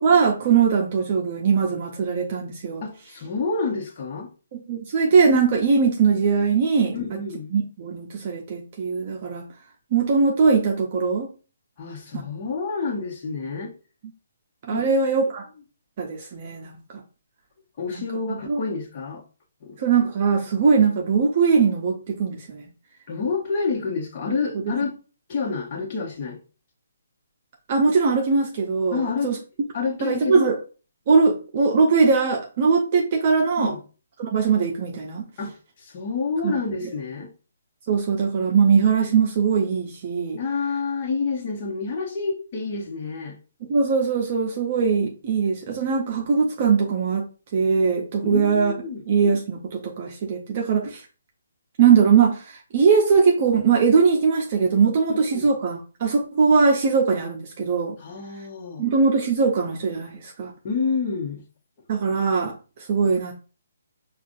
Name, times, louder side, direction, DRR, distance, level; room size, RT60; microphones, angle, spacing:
voice 1, 0.0-2.8 4.5-6.9 7.5-9.4 9.9-11.3 12.1-12.2 14.7-15.4 16.0-17.0 17.9-18.0 18.3-18.6 19.8-22.6 27.7-29.4 30.0-30.6 31.1-33.7 34.2-35.3 36.4-36.5 37.9-40.4 43.7-47.3 47.5-48.7 49.1-51.0 51.8-58.0 58.8-60.5 61.9-62.6 62.9-63.3, right 5 dB, 40° right, 0.6 m, -21 dB
voice 2, 2.8-4.3 6.9-7.5 11.8-13.7 14.7-14.9 17.8-19.2 19.6-19.8 23.1-24.9 25.3-26.4 28.9-29.4 29.7-30.5 33.6-33.8 35.4-37.3 40.4-43.4 48.2-49.0 55.1-55.5 58.0-58.9 60.6-61.5, left 4 dB, 40° left, 1.1 m, -28 dB
4.8 x 2.4 x 2.6 m
hypercardioid pair, 150°, 0 cm